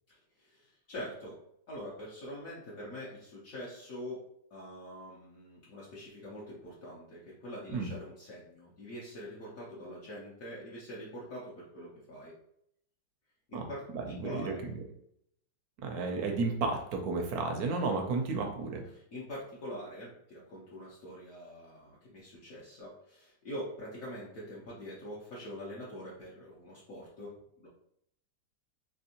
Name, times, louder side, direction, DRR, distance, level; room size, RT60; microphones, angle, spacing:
voice 1, 0.1-12.4 13.5-14.6 18.9-27.7, equal, 60° left, -6 dB, 1.0 m, -44 dB
voice 2, 13.9-14.8 15.8-18.8, right 3 dB, 75° right, 3 dB, 0.8 m, -32 dB
3.4 x 2.9 x 2.8 m, 0.73 s
omnidirectional pair, 2.0 m